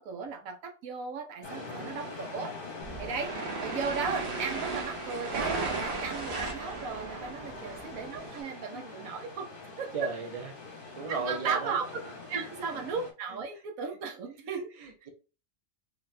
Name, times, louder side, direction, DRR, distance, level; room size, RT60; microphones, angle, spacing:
voice 1, 0.0-2.5 3.0-9.5 9.8-10.1 11.1-12.0 12.3-14.7, right 5 dB, 90° right, 1.2 m, -36 dB
sound 1, 1.4-13.1, left 3 dB, 45° left, 1.0 m, -44 dB
voice 2, 1.5-1.9 7.4-7.8 8.2-8.3 8.7-8.9 9.9-10.5 11.0-11.8 12.3-12.4 14.4-15.1, right 4 dB, 35° right, 0.6 m, -37 dB
sound 2, 2.8-8.4, right 3 dB, 55° right, 1.1 m, -36 dB
4.0 x 3.0 x 2.6 m
omnidirectional pair, 1.4 m